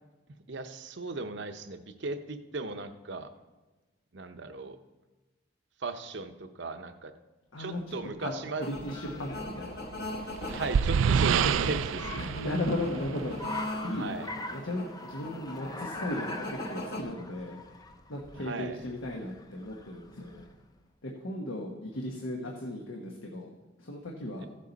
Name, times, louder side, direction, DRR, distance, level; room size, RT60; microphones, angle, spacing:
voice 1, 0.5-3.3 4.1-4.8 5.8-7.1 7.6-8.7 10.5-12.2 13.9-14.3 18.4-18.8 24.4-24.5, right 3 dB, 60° right, 8 dB, 0.7 m, -36 dB
voice 2, 7.5-8.3 8.7-9.8 12.2-17.6 18.1-20.5 21.0-23.5 23.8-24.5, left 1 dB, 80° left, 0 dB, 1.2 m, -36 dB
Car, 7.9-20.6, left 2 dB, 20° left, 0.5 m, -44 dB
sound 1, 8.6-17.0, left 1 dB, 55° left, 1.3 m, -41 dB
sound 2, 9.9-13.6, right 7 dB, 80° right, 0.3 m, -28 dB
15.0 x 7.5 x 4.0 m, 1.2 s
head